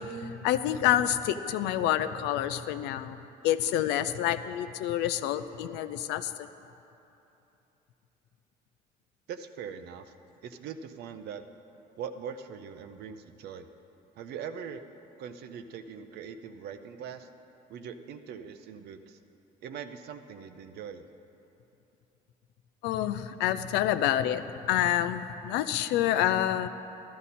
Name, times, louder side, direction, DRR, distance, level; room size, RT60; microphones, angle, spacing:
voice 1, 0.0-3.2 3.4-6.3 22.8-24.4 24.7-26.7, left 11 dB, 85° left, 12 dB, 0.5 m, -28 dB
voice 2, 9.3-10.1 10.4-11.4 12.0-13.7 14.1-14.8 15.2-17.3 17.7-19.2 19.6-21.0, right 7 dB, 75° right, 9 dB, 0.7 m, -41 dB
13.5 x 12.5 x 4.2 m, 3.0 s
cardioid pair, 110°, 17 cm